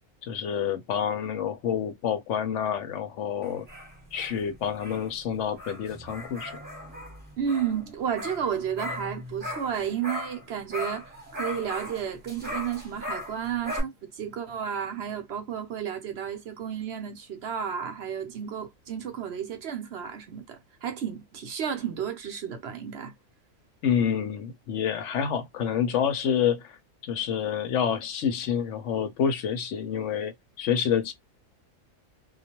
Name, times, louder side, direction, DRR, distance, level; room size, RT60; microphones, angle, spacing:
voice 1, 0.2-3.7 4.1-6.5 23.8-26.8 27.0-30.3 30.6-31.1, left 8 dB, 70° left, 0.9 m, -28 dB
sound 1, 3.4-10.4 10.7-13.8, left 1 dB, 10° right, 0.9 m, -38 dB
voice 2, 7.4-23.1, right 8 dB, 60° right, 0.8 m, -32 dB
2.3 x 2.2 x 2.8 m
omnidirectional pair, 1.4 m